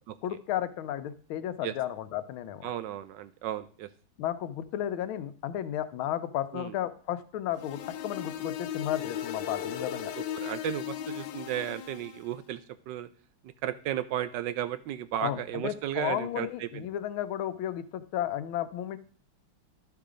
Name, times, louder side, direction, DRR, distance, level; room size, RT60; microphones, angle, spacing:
voice 1, 0.2-2.7 4.2-10.1 15.2-19.0, left 11 dB, 90° left, 12 dB, 1.5 m, -33 dB
voice 2, 2.6-3.9 6.5-6.7 10.1-12.6 12.9-13.1 13.6-16.8, right 11 dB, 75° right, 13 dB, 1.1 m, -34 dB
sound 1, 7.5-12.3, left 9 dB, 75° left, 1.4 m, -37 dB
12.0 x 4.7 x 5.0 m, 0.43 s
omnidirectional pair, 2.2 m